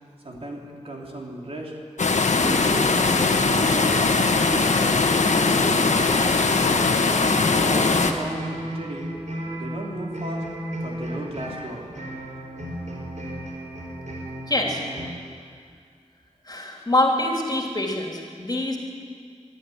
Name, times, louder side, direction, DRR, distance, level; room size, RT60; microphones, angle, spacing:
voice 1, 0.2-1.8 2.4-5.9 7.0-9.1 9.5-10.4 10.8-12.0, right 1 dB, 50° right, -1 dB, 3.8 m, -35 dB
sound 1, 2.0-8.1, left 3 dB, 75° left, 1.4 m, -20 dB
sound 2, 2.4-15.1, right 1 dB, 80° right, 4.6 m, -34 dB
voice 2, 14.5-14.8 16.5-18.8, left 1 dB, 35° left, 0 dB, 3.4 m, -24 dB
23.0 x 12.0 x 9.7 m, 2.1 s
wide cardioid pair, 80°, 12 cm